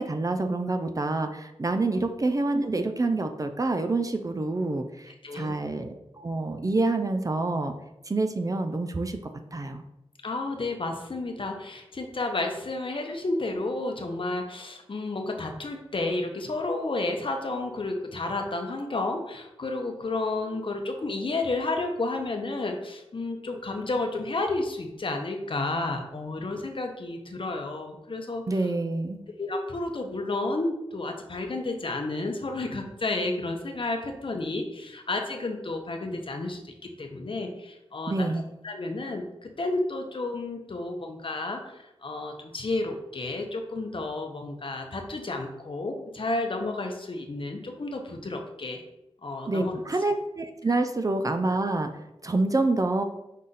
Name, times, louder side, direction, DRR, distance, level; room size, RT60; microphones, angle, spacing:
voice 1, 0.0-7.7 8.1-9.2 9.5-9.8 28.5-29.2 38.1-38.4 49.5-51.9 52.2-53.0, right 2 dB, 35° right, 6 dB, 0.4 m, -27 dB
voice 2, 5.2-5.6 10.2-28.4 29.4-38.3 38.6-41.6 42.0-48.8 49.2-49.7, left 2 dB, 55° left, 4 dB, 0.7 m, -31 dB
5.5 x 2.4 x 3.9 m, 0.89 s
cardioid pair, 50°, 10 cm